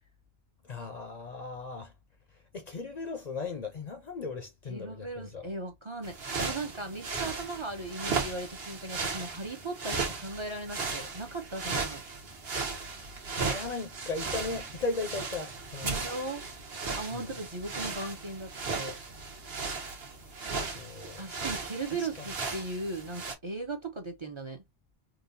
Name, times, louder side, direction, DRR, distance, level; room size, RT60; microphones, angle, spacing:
voice 1, 0.6-1.9 2.3-5.5 13.0-13.2 13.5-16.1 17.1-17.4 20.6-21.3 21.9-22.3, left 3 dB, 50° left, 0.6 m, -37 dB
voice 2, 4.7-12.0 15.8-16.4 17.0-19.0 21.2-24.6, right 2 dB, 35° right, 0.6 m, -38 dB
sound 1, 6.0-23.3, right 4 dB, 70° right, 1.2 m, -36 dB
3.9 x 2.4 x 2.5 m
omnidirectional pair, 1.1 m